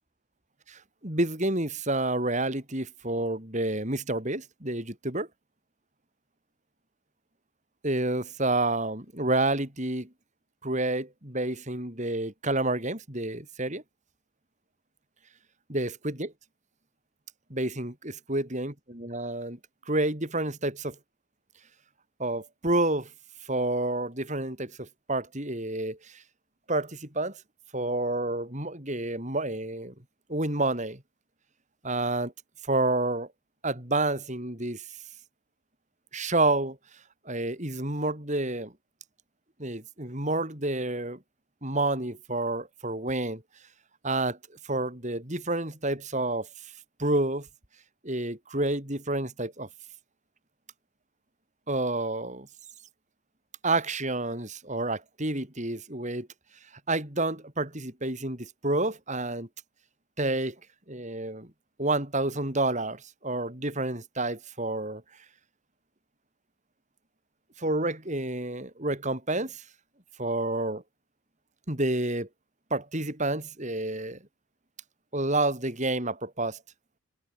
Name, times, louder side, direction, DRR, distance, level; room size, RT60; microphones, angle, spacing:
voice 1, 0.7-5.3 7.8-10.1 10.6-13.8 15.7-16.3 17.5-19.6 19.9-21.0 22.2-23.1 23.5-26.2 26.7-27.4 27.7-29.9 30.3-31.0 31.8-32.3 32.7-33.3 33.6-34.8 36.1-36.8 37.3-38.7 39.6-41.2 41.6-43.4 44.0-44.4 44.6-46.5 47.0-47.5 48.0-49.7 51.7-52.5 53.6-56.3 56.9-59.5 60.2-60.6 60.9-61.5 61.8-65.0 67.6-69.6 70.2-70.8 71.7-72.3 72.7-74.2 75.1-76.6, right 2 dB, 35° right, 4.0 m, -29 dB
head